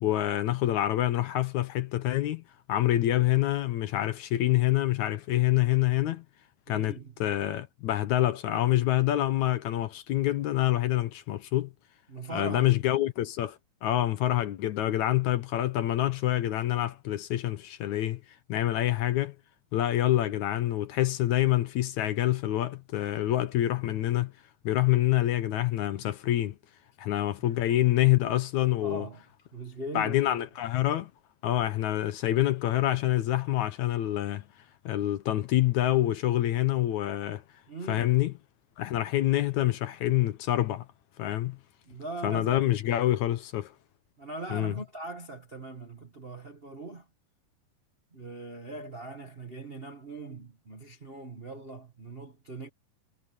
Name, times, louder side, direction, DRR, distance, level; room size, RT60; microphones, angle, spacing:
voice 1, 0.0-2.4 2.7-6.2 6.7-11.7 12.3-18.2 18.5-19.4 19.7-24.3 24.6-26.6 27.0-29.1 29.9-31.1 31.4-34.4 34.9-37.4 37.9-38.3 38.8-40.9 41.2-41.6 42.2-43.7 44.5-44.7, left 14 dB, 70° left, 2.0 m, -26 dB
voice 2, 6.7-7.1 12.1-12.7 27.4-27.6 28.8-29.2 29.5-30.4 37.7-38.2 41.8-43.0 44.2-47.1 48.1-52.7, right 2 dB, 85° right, 0.5 m, -40 dB
omnidirectional pair, 4.0 m